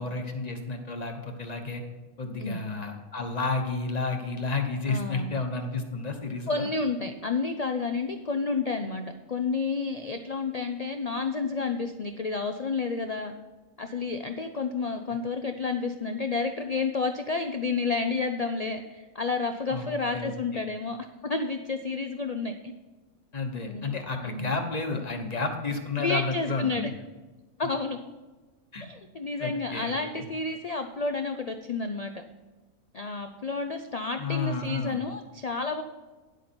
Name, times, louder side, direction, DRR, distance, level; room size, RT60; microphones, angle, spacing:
voice 1, 0.0-1.8 2.2-6.7 19.7-19.8 20.1-20.6 23.3-26.9 28.7-28.8 29.4-30.2 34.2-35.0, left 3 dB, 30° left, 5 dB, 1.1 m, -31 dB
voice 2, 4.8-5.4 6.5-13.3 13.8-21.0 21.2-22.7 23.6-24.0 24.2-24.5 26.0-26.9 27.6-28.0 28.8-32.2 32.9-35.8, left 4 dB, 75° left, 6 dB, 0.3 m, -30 dB
10.5 x 8.1 x 4.4 m, 1.2 s
omnidirectional pair, 1.5 m